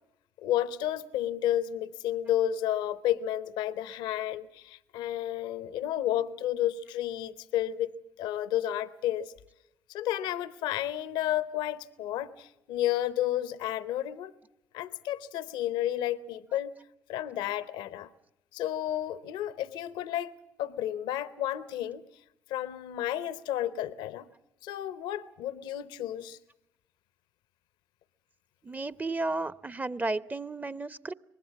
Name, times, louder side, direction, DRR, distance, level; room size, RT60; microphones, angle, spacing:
voice 1, 0.4-9.3 9.9-14.3 14.7-16.7 17.1-18.1 18.5-22.0 22.5-24.3 24.6-26.4, left 12 dB, 75° left, 17 dB, 0.8 m, -31 dB
voice 2, 28.6-31.1, right 2 dB, 20° right, 17 dB, 0.8 m, -33 dB
24.0 x 20.0 x 7.3 m, 0.84 s
hypercardioid pair, 50°, 8 cm